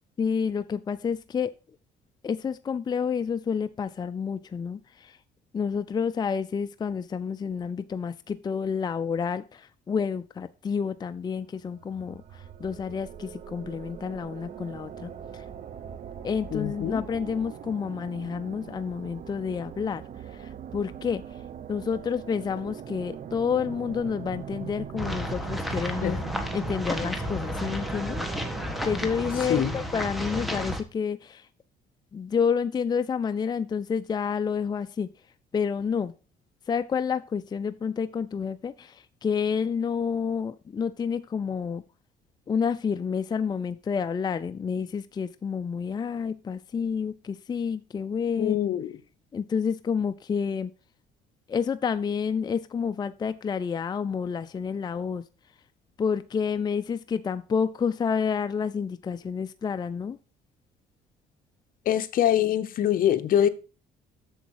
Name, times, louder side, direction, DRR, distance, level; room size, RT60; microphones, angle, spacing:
voice 1, 0.2-1.5 2.2-5.2 5.5-15.4 16.2-20.0 20.4-21.2 21.7-26.2 26.5-28.2 28.8-31.5 32.1-35.1 35.5-36.1 36.7-41.8 42.5-48.6 49.3-50.7 51.5-55.2 56.0-60.2, left 6 dB, 25° left, 0.4 m, -29 dB
sound 1, 11.7-29.7, right 8 dB, 45° right, 0.9 m, -41 dB
voice 2, 16.5-17.0 26.0-26.2 29.4-29.8 48.4-49.0 61.8-63.5, left 10 dB, 55° left, 0.8 m, -24 dB
sound 2, 25.0-30.8, equal, ahead, 1.4 m, -32 dB
8.0 x 7.1 x 4.7 m
cardioid pair, 110°, 17 cm